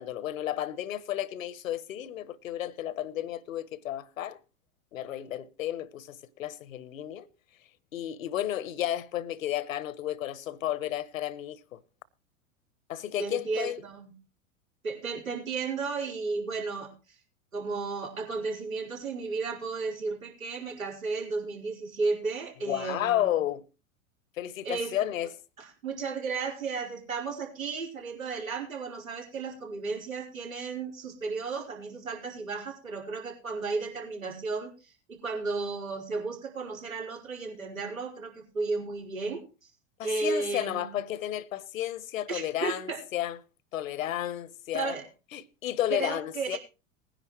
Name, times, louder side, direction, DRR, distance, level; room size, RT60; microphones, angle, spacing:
voice 1, 0.0-4.4 4.9-7.3 7.9-11.8 12.9-13.8 22.6-23.6 24.4-25.4 40.0-43.4 43.7-45.0 45.3-46.6, left 12 dB, 75° left, 1.1 m, -32 dB
voice 2, 13.2-14.1 14.8-16.9 17.5-23.2 24.6-24.9 25.6-39.4 40.0-41.0 42.3-43.0 44.7-45.0 45.9-46.6, right 4 dB, 85° right, 4.6 m, -34 dB
20.0 x 10.5 x 3.1 m
hypercardioid pair, 90°, 40 cm